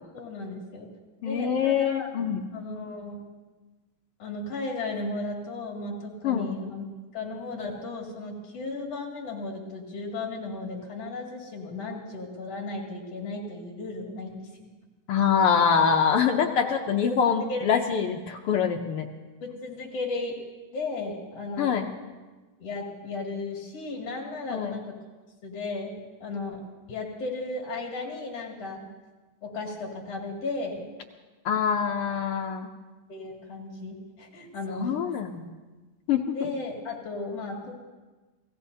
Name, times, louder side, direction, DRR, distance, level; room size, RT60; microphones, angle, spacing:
voice 1, 0.1-0.9 1.2-3.2 4.2-6.9 7.1-14.7 16.5-16.8 17.1-17.2 17.5-17.8 19.4-20.4 20.7-21.9 22.6-24.9 25.4-26.6 26.9-28.9 29.4-30.9 33.1-35.2 36.3-37.8, left 3 dB, 55° left, -2 dB, 3.4 m, -35 dB
voice 2, 1.2-2.4 6.2-6.5 15.1-19.1 21.6-21.8 24.5-24.7 31.4-32.7 34.7-35.4 36.1-36.3, left 7 dB, 75° left, 3 dB, 1.3 m, -24 dB
29.5 x 17.5 x 2.8 m, 1.2 s
omnidirectional pair, 3.5 m